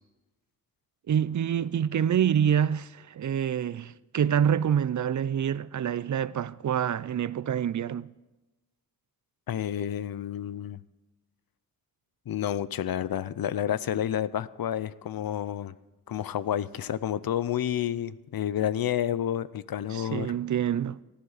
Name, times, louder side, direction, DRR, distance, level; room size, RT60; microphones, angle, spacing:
voice 1, 1.1-8.1 19.9-21.0, right 9 dB, 55° right, 0.5 m, -26 dB
voice 2, 9.5-10.8 12.3-15.7 16.1-20.3, left 10 dB, 90° left, 0.6 m, -30 dB
19.0 x 13.5 x 4.0 m
wide cardioid pair, 105°, 35 cm